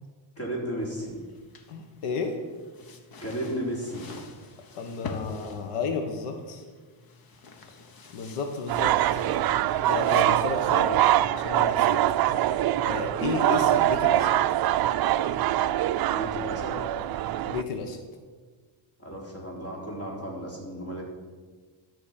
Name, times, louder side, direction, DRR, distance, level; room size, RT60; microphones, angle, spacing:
voice 1, 0.4-1.1 3.2-4.0 16.1-16.8 19.0-21.0, right 1 dB, 30° left, -2 dB, 3.8 m, -34 dB
sound 1, 0.8-11.2, left 4 dB, 45° left, 1.3 m, -46 dB
voice 2, 1.7-2.4 4.8-6.6 7.7-7.8 8.1-9.0 9.9-11.1 11.3-12.0 12.8-14.3 17.5-18.0, left 4 dB, 85° left, 5 dB, 1.5 m, -32 dB
sound 2, 8.7-17.6, right 13 dB, 50° right, 0.5 m, -24 dB
12.0 x 6.1 x 8.8 m, 1.5 s
cardioid pair, 140°, 49 cm